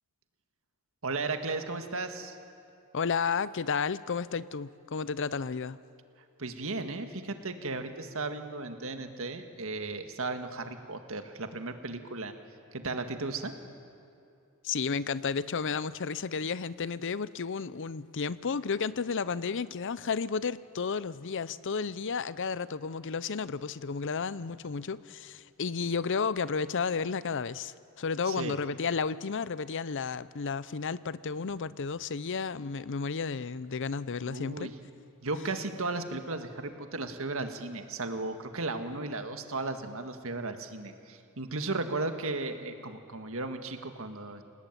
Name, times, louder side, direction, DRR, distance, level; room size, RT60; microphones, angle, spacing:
voice 1, 1.0-2.4 6.4-12.3 12.7-13.5 28.3-28.6 34.2-34.8 35.2-44.4, right 3 dB, 65° right, 7 dB, 1.9 m, -35 dB
voice 2, 2.9-5.8 14.6-34.7, left 5 dB, 55° left, 17 dB, 0.6 m, -32 dB
28.5 x 18.5 x 9.2 m, 2.5 s
head